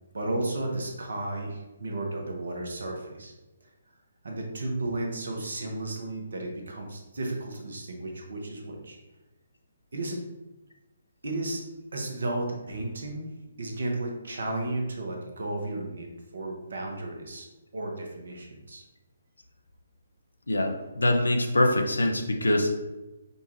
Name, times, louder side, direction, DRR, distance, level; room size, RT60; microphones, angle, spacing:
voice 1, 0.1-3.3 4.2-9.0 9.9-10.2 11.2-11.6 11.9-13.2 13.6-16.1 16.3-17.5 17.7-18.8, right 2 dB, 65° right, 1 dB, 0.9 m, -33 dB
voice 2, 20.5-22.7, left 1 dB, 80° left, 4 dB, 0.6 m, -24 dB
5.2 x 2.4 x 3.0 m, 1.1 s
figure-of-eight pair, 135°, 0 cm